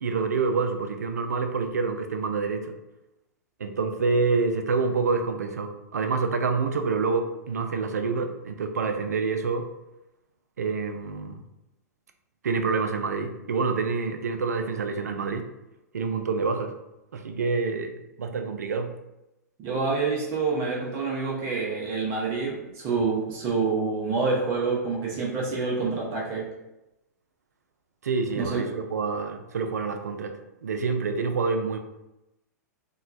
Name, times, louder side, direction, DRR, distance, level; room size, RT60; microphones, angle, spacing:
voice 1, 0.0-2.7 3.6-9.7 10.6-11.4 12.4-15.5 15.9-16.7 17.1-18.9 28.0-30.4 30.6-31.8, right 4 dB, 70° right, 6 dB, 0.3 m, -27 dB
voice 2, 19.6-26.5 28.3-28.7, right 4 dB, 35° right, -4 dB, 0.6 m, -27 dB
2.9 x 2.2 x 2.5 m, 0.95 s
figure-of-eight pair, 105°, 9 cm